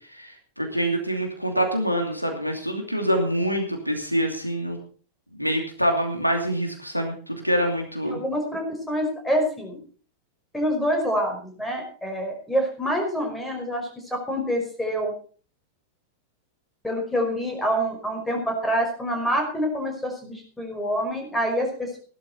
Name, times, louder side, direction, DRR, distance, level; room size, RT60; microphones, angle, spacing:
voice 1, 0.1-4.8 5.3-8.2, equal, 90° left, 3 dB, 2.7 m, -25 dB
voice 2, 8.0-9.8 10.5-15.1 16.8-22.0, equal, 5° left, 3 dB, 5.2 m, -26 dB
16.0 x 12.0 x 4.2 m, 0.42 s
figure-of-eight pair, 90°, 0 cm